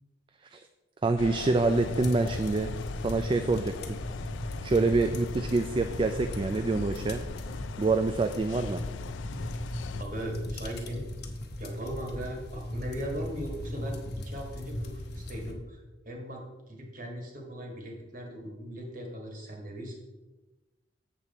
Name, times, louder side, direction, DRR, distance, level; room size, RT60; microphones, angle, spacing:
voice 1, 1.0-2.7 3.0-3.7 4.6-7.2 7.8-8.8, right 3 dB, 25° right, 7 dB, 0.3 m, -26 dB
sound 1, 1.2-10.0, left 6 dB, 75° left, 0.4 m, -41 dB
sound 2, 1.6-15.5, left 1 dB, 55° left, 1.0 m, -38 dB
voice 2, 10.0-11.0 11.6-14.0 14.2-20.0, equal, 45° right, 1 dB, 1.6 m, -38 dB
7.4 x 6.9 x 4.1 m, 1.1 s
head